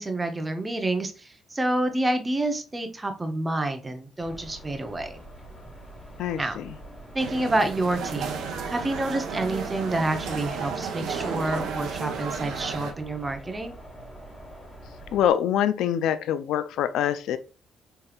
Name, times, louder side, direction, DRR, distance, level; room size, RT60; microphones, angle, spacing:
voice 1, 0.0-5.2 6.4-6.6 7.1-8.3 8.7-13.7, right 2 dB, 15° right, 0.8 m, -28 dB
sound 1, 4.2-15.3, right 1 dB, 15° left, 1.5 m, -44 dB
voice 2, 6.2-6.7 15.1-17.4, left 10 dB, 90° left, 0.3 m, -25 dB
sound 2, 7.2-12.9, right 5 dB, 85° right, 0.8 m, -33 dB
4.4 x 3.3 x 2.3 m
cardioid pair, 115°, 0 cm